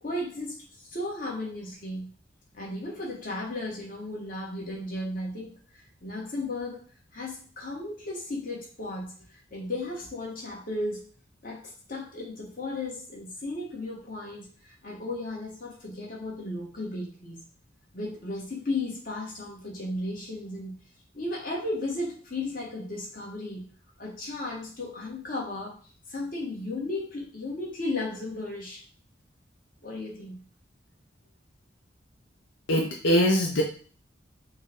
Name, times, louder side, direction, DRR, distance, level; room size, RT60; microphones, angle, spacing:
voice 1, 0.0-2.1 2.5-6.8 7.1-9.1 9.5-11.0 11.4-17.4 17.9-20.7 21.1-23.6 24.0-25.7 26.1-28.8 29.8-30.4, left 2 dB, 45° left, -3 dB, 1.3 m, -35 dB
voice 2, 32.7-33.6, equal, 80° left, -1 dB, 0.7 m, -22 dB
4.3 x 2.2 x 3.6 m, 0.42 s
head